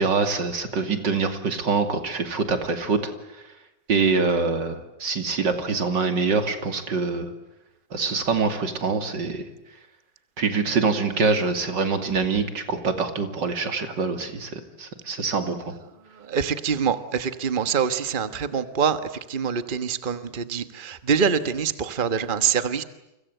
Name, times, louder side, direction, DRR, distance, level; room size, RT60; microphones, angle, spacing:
voice 1, 0.0-3.1 3.9-7.3 7.9-9.4 10.4-15.7, right 4 dB, 90° right, 7 dB, 3.3 m, -25 dB
voice 2, 16.1-22.8, right 6 dB, 30° right, 11 dB, 1.4 m, -25 dB
30.0 x 25.0 x 7.9 m, 0.94 s
omnidirectional pair, 1.9 m